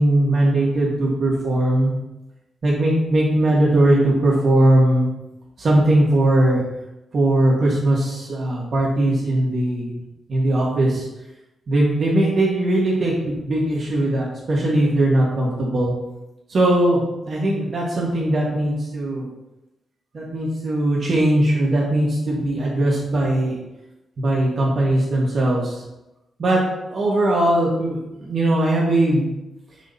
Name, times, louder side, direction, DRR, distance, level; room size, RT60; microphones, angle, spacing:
voice 1, 0.0-1.9 2.6-5.1 5.6-6.6 7.1-10.0 10.3-11.1 11.7-15.9 16.5-19.3 20.1-23.6 24.2-25.8 26.4-26.6 26.9-29.3, right 1 dB, 50° right, -4 dB, 1.9 m, -19 dB
6.2 x 3.9 x 5.6 m, 0.94 s
cardioid pair, 105°, 0 cm